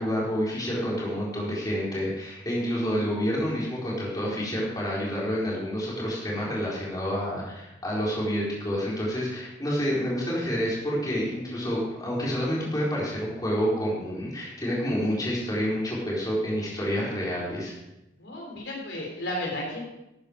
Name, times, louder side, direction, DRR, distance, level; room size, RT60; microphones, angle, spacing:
voice 1, 0.0-17.7, equal, 20° left, -6 dB, 4.2 m, -28 dB
voice 2, 18.2-19.8, left 1 dB, 65° left, -1 dB, 3.6 m, -33 dB
13.0 x 9.5 x 5.2 m, 0.92 s
head